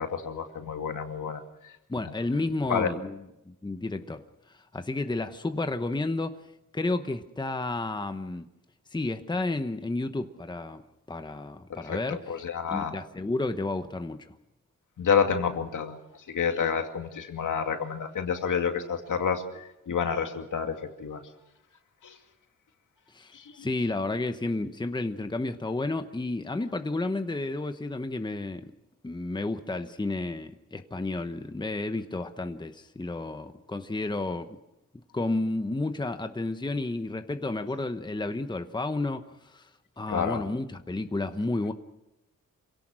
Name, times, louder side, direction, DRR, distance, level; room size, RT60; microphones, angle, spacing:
voice 1, 0.0-1.7 2.7-2.9 11.9-12.9 15.0-16.0 16.3-21.2 22.0-22.1 23.3-23.7 40.1-40.4, left 6 dB, 75° left, 5 dB, 2.4 m, -29 dB
voice 2, 1.9-6.4 6.7-8.5 8.9-10.8 11.1-12.4 12.7-14.3 23.1-28.7 29.0-34.6 35.1-39.7 40.0-41.7, left 2 dB, 15° left, 8 dB, 1.0 m, -31 dB
26.0 x 17.5 x 6.2 m, 0.88 s
cardioid pair, 95°, 32 cm